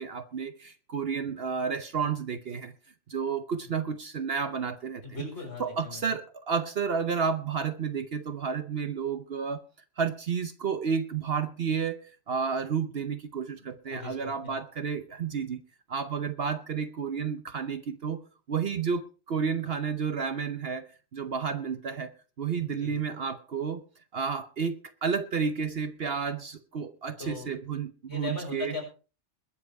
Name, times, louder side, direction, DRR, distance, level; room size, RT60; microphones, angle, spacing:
voice 1, 0.0-2.7 3.1-5.0 5.6-9.6 10.0-15.6 15.9-18.2 18.5-23.8 24.1-28.8, right 6 dB, 60° right, 1.1 m, -31 dB
voice 2, 5.0-6.1 13.5-14.6 22.6-22.9 27.2-27.5 28.1-28.8, left 3 dB, 65° left, 6.9 m, -39 dB
21.5 x 7.7 x 4.7 m
omnidirectional pair, 1.2 m